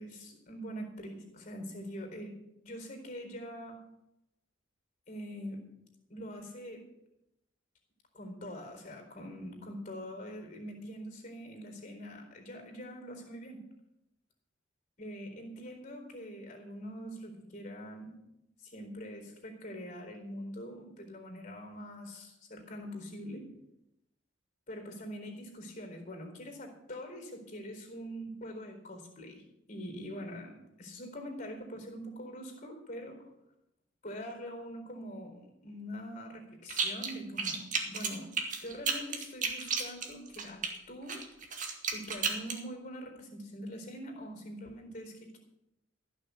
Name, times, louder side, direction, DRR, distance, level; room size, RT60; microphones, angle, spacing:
voice 1, 0.0-2.4 2.6-3.8 5.1-5.6 6.1-6.8 8.1-13.6 15.0-18.2 18.6-23.4 24.7-33.3 34.0-38.3 38.6-40.6 40.9-41.2 41.9-45.4, equal, 40° left, 3 dB, 4.2 m, -44 dB
sound 1, 36.7-37.1 37.4-40.7 41.1-42.6, right 5 dB, 40° right, 2.0 m, -33 dB
15.5 x 6.5 x 8.3 m, 0.87 s
head